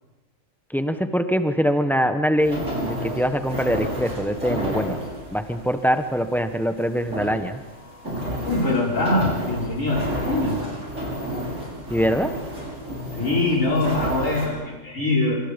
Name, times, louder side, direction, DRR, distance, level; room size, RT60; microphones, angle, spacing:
voice 1, 0.7-5.0 5.3-7.6 11.9-12.3, equal, ahead, 7 dB, 1.2 m, -23 dB
sound 1, 2.4-14.5, equal, 70° right, 7.0 m, -31 dB
voice 2, 8.5-10.8 13.1-15.4, left 2 dB, 75° left, -2 dB, 5.8 m, -23 dB
26.5 x 25.0 x 5.3 m, 1.2 s
omnidirectional pair, 1.4 m